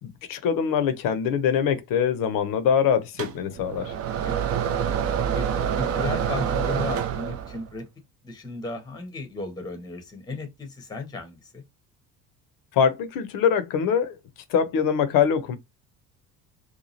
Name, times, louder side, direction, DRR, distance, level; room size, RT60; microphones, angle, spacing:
voice 1, 0.0-3.9 12.7-14.2 14.5-15.6, left 7 dB, 45° left, 0.7 m, -23 dB
sound 1, 3.2-7.7, right 8 dB, 30° right, 0.5 m, -27 dB
voice 2, 4.2-5.5 5.8-7.9 8.2-11.6, left 3 dB, 10° left, 0.8 m, -35 dB
2.8 x 2.3 x 2.8 m
figure-of-eight pair, 60°, 49 cm